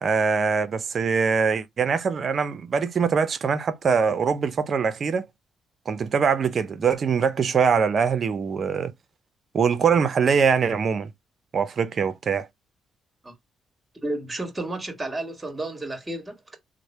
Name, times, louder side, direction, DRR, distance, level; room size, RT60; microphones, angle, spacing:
voice 1, 0.0-5.3 5.9-8.9 9.5-11.1 11.5-12.5, right 6 dB, 50° right, 0.6 m, -23 dB
voice 2, 14.0-16.6, right 2 dB, 20° right, 1.4 m, -32 dB
3.2 x 2.1 x 4.2 m
cardioid pair, 90°, 0 cm